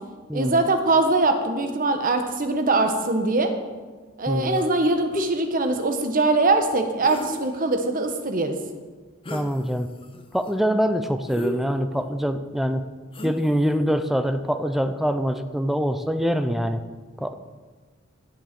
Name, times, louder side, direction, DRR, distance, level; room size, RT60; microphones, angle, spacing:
voice 1, 0.3-3.5 4.2-8.5, right 2 dB, 40° right, 6 dB, 1.1 m, -22 dB
voice 2, 4.3-4.6 9.3-9.9 10.3-12.9 13.2-16.8 17.2-17.3, equal, ahead, 9 dB, 0.5 m, -24 dB
sound 1, 4.5-4.8 5.1-5.3 7.0-7.7 9.2-9.5 10.0-10.5 11.3-12.1 13.1-13.6, left 2 dB, 25° left, 0.9 m, -33 dB
12.0 x 7.2 x 6.0 m, 1.4 s
head